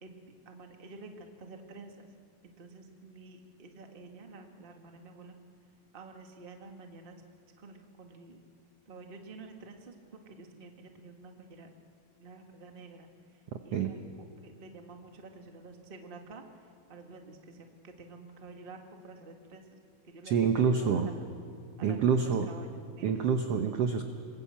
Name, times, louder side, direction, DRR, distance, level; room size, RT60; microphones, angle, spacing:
voice 1, 0.4-2.1 2.4-5.4 5.9-7.2 7.6-8.4 8.8-11.7 12.2-19.8 20.0-20.7 21.2-21.3 21.8-23.3, right 3 dB, 25° right, 4 dB, 1.1 m, -50 dB
voice 2, 20.2-21.1 21.8-22.5 23.0-24.1, right 6 dB, 70° right, 6 dB, 1.5 m, -27 dB
27.0 x 21.5 x 8.8 m, 2.3 s
omnidirectional pair, 4.2 m